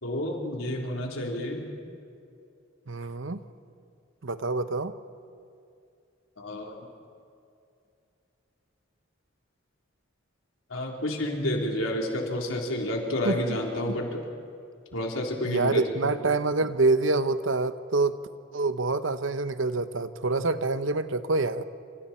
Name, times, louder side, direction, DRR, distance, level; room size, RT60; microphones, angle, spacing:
voice 1, 0.0-1.6 6.4-6.8 10.7-14.2 14.9-15.8, left 1 dB, 90° left, 0 dB, 3.8 m, -30 dB
voice 2, 2.9-3.4 4.2-4.9 13.2-13.6 13.9-14.0 15.4-18.2 18.5-21.6, right 3 dB, 70° right, 11 dB, 0.9 m, -26 dB
28.0 x 27.0 x 4.4 m, 2.5 s
head